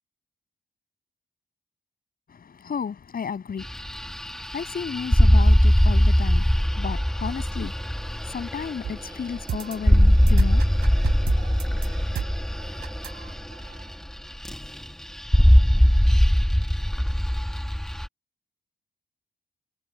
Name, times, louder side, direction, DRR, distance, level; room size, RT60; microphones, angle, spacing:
voice 1, 2.3-12.2, left 6 dB, 60° left, 7.4 m, -34 dB
sound 1, 3.6-14.1 14.4-14.9 15.2-18.1, equal, 5° left, 1.9 m, -20 dB
sound 2, 8.8-13.9, right 9 dB, 80° right, 4.1 m, -35 dB
cardioid pair, 85°, 17 cm